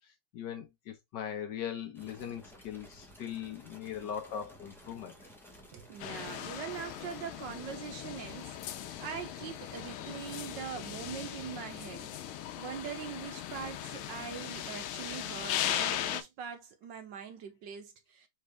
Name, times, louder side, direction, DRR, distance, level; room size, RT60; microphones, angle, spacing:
voice 1, 0.3-5.1, left 9 dB, 65° left, 1.3 m, -40 dB
sound 1, 1.9-12.0, left 1 dB, ahead, 0.6 m, -55 dB
voice 2, 5.7-18.3, right 8 dB, 70° right, 1.3 m, -43 dB
sound 2, 6.0-16.2, left 11 dB, 90° left, 1.5 m, -38 dB
4.3 x 3.3 x 3.4 m
omnidirectional pair, 2.3 m